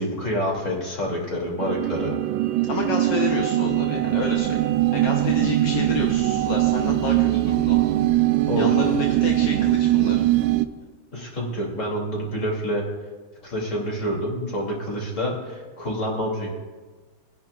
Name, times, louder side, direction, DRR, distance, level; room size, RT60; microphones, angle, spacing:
voice 1, 0.0-2.2 8.5-8.9 11.1-12.8 13.4-16.5, equal, 40° left, -2 dB, 3.1 m, -27 dB
sound 1, 1.6-10.7, right 15 dB, 90° right, 1.3 m, -21 dB
voice 2, 2.7-4.6 4.9-7.9 8.6-10.2, left 5 dB, 75° left, 0 dB, 1.7 m, -30 dB
22.5 x 10.5 x 2.4 m, 1.3 s
omnidirectional pair, 2.0 m